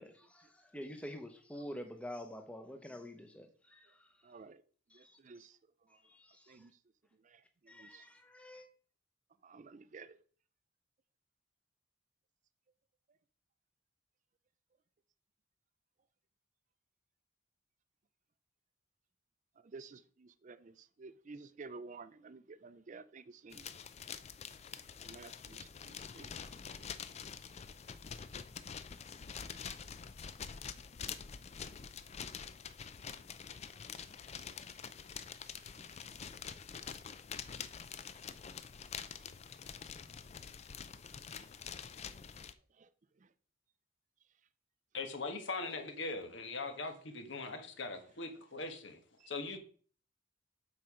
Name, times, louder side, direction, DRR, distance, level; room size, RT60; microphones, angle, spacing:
voice 1, 0.0-4.1 4.9-5.5 6.0-6.6 7.7-8.7, equal, 5° left, 0.9 m, -48 dB
voice 2, 4.2-4.6 4.9-5.6 5.9-6.0 6.5-6.8 7.2-8.1 9.4-10.2 19.6-23.7 25.0-26.9 33.9-34.1 35.7-36.1 41.3-41.5 42.7-42.9 43.2-43.3 49.2-49.3, right 4 dB, 40° right, 0.4 m, -53 dB
sound 1, 23.5-42.5, left 7 dB, 35° left, 0.4 m, -46 dB
voice 3, 44.9-49.0 49.3-49.6, left 3 dB, 65° left, 1.3 m, -41 dB
7.8 x 4.4 x 5.0 m
head